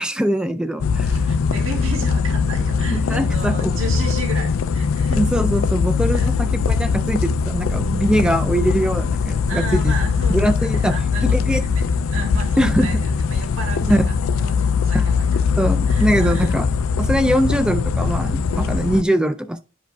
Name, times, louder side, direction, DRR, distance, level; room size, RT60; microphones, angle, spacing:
voice 1, 0.0-1.1 2.9-3.8 5.2-9.9 10.3-11.0 11.2-11.6 12.6-12.9 13.9-14.0 14.9-15.0 15.6-16.7 17.0-19.6, equal, 5° right, 0.3 m, -21 dB
sound 1, 0.8-19.0, left 5 dB, 85° left, 0.4 m, -21 dB
voice 2, 1.1-5.2 6.1-6.3 9.5-15.4 15.8-16.5, right 2 dB, 80° right, 1.6 m, -33 dB
11.0 x 4.9 x 2.3 m
head